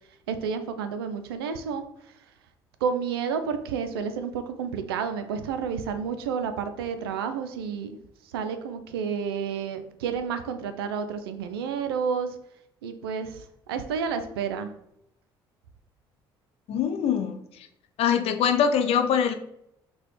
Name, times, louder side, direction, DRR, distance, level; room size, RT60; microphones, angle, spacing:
voice 1, 0.3-2.2 2.8-8.0 8.2-12.4 12.8-14.7, right 6 dB, 80° right, 9 dB, 0.4 m, -30 dB
voice 2, 16.7-17.7 18.0-19.3, left 7 dB, 55° left, 7 dB, 0.5 m, -23 dB
5.6 x 2.2 x 3.1 m, 0.79 s
figure-of-eight pair, 50°, 12 cm